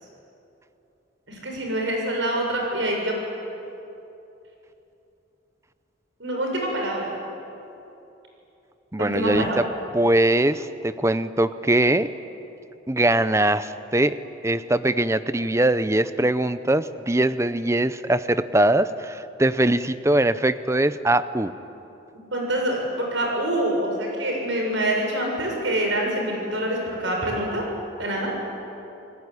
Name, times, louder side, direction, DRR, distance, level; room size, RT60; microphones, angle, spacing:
voice 1, 1.3-3.2 6.2-7.1 9.0-9.6 22.3-27.7 28.0-28.3, right 1 dB, 70° right, 0 dB, 6.9 m, -26 dB
voice 2, 8.9-9.6 9.9-12.1 12.9-14.2 14.4-21.5, right 1 dB, 15° right, 13 dB, 0.6 m, -21 dB
28.0 x 19.0 x 9.8 m, 2.9 s
head